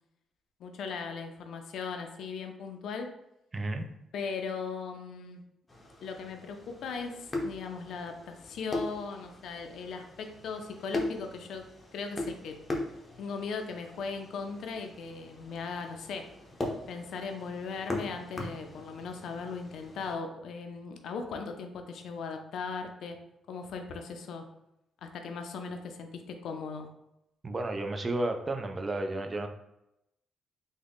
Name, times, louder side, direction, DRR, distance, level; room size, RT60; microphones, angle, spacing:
voice 1, 0.6-3.1 4.1-5.4 6.0-11.6 11.9-12.6 13.2-16.3 16.9-23.2 23.5-24.5 25.0-26.9, left 5 dB, 70° left, 5 dB, 0.4 m, -38 dB
voice 2, 3.5-3.9 27.4-29.5, right 2 dB, 30° right, 6 dB, 0.4 m, -32 dB
sound 1, 5.7-20.2, left 2 dB, 20° left, 0.7 m, -40 dB
3.5 x 2.1 x 3.5 m, 0.85 s
cardioid pair, 90°, 0 cm